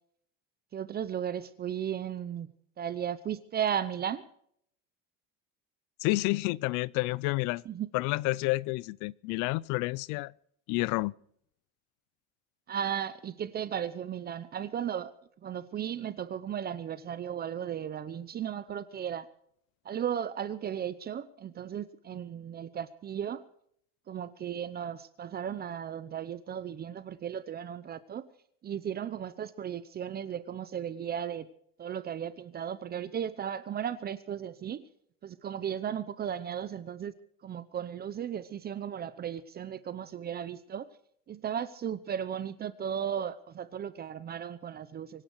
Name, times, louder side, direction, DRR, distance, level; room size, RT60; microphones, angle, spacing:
voice 1, 0.7-2.5 2.8-4.2 7.7-7.9 12.7-15.1 15.4-19.3 19.8-23.4 24.1-28.3 28.6-31.5 31.8-34.9 35.2-37.1 37.4-40.9 41.3-45.2, right 9 dB, 30° right, 0.8 m, -35 dB
voice 2, 6.0-7.6 7.9-10.3 10.7-11.1, left 22 dB, 70° left, 0.6 m, -29 dB
24.5 x 10.5 x 4.7 m
cardioid pair, 135°, 31 cm